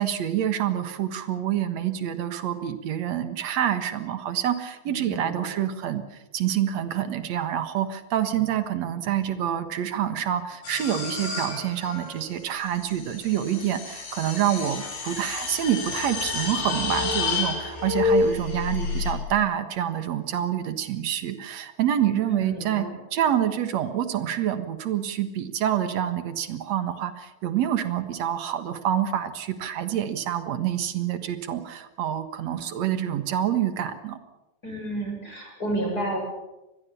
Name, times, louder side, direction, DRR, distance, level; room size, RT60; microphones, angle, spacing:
voice 1, 0.0-6.0 6.3-22.9 23.1-34.2, right 10 dB, 55° right, 10 dB, 2.2 m, -27 dB
voice 2, 4.9-5.5 22.3-23.0 34.6-36.2, right 1 dB, 25° left, 1 dB, 7.1 m, -31 dB
sound 1, 10.6-19.1, left 4 dB, 85° left, 6.7 m, -29 dB
26.0 x 20.5 x 7.0 m, 1.0 s
omnidirectional pair, 4.5 m